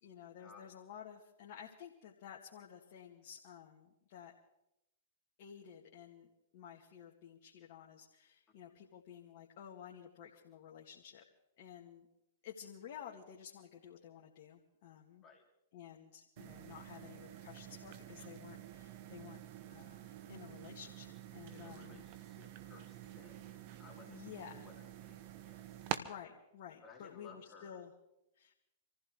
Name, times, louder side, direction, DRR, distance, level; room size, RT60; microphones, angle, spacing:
voice 1, 0.0-4.3 5.4-6.3 6.5-11.2 11.6-12.1 12.4-15.2 15.7-19.4 19.7-22.0 24.1-24.7 25.9-27.9 28.4-28.5, left 8 dB, 55° left, -1 dB, 1.9 m, -53 dB
sound 1, 16.4-26.0, right 12 dB, 50° right, 1.3 m, -48 dB
voice 2, 21.5-25.9 26.8-27.8, left 5 dB, 25° left, -1 dB, 3.0 m, -59 dB
27.5 x 15.0 x 3.2 m, 0.87 s
hypercardioid pair, 115°, 0 cm